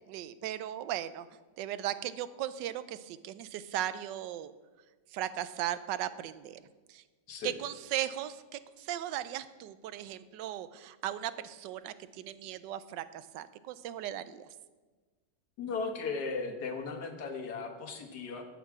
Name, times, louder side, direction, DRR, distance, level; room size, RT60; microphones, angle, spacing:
voice 1, 0.1-1.3 1.6-4.5 5.1-6.6 6.9-7.0 7.4-14.5, right 12 dB, 80° right, 14 dB, 1.2 m, -37 dB
voice 2, 15.6-18.4, left 4 dB, 65° left, 5 dB, 1.7 m, -36 dB
11.0 x 8.3 x 4.7 m, 1.3 s
omnidirectional pair, 1.9 m